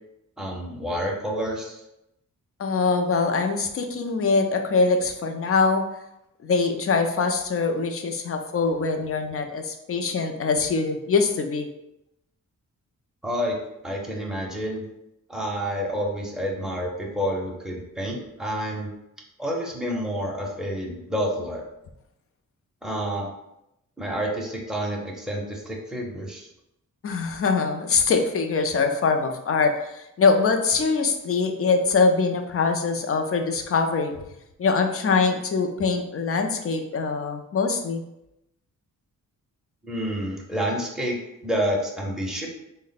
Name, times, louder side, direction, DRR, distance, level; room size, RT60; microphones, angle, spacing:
voice 1, 0.4-1.8 13.2-13.6 13.8-14.8 15.3-18.9 19.4-21.6 22.8-23.3 24.0-26.5 39.8-41.2 41.4-42.5, equal, ahead, -2 dB, 0.6 m, -29 dB
voice 2, 2.6-5.8 6.4-11.7 27.0-34.2 34.6-38.0, left 4 dB, 45° left, 5 dB, 0.4 m, -23 dB
3.5 x 2.1 x 3.9 m, 0.86 s
wide cardioid pair, 145°, 33 cm